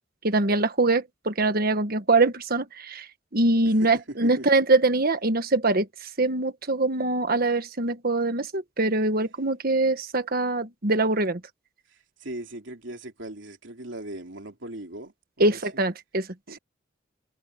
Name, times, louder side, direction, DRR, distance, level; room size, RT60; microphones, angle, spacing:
voice 1, 0.2-3.0 3.3-11.4 15.4-16.3, right 2 dB, 50° right, 1.4 m, -23 dB
voice 2, 3.8-4.4 12.2-15.8 16.5-16.6, right 1 dB, 65° right, 3.6 m, -39 dB
head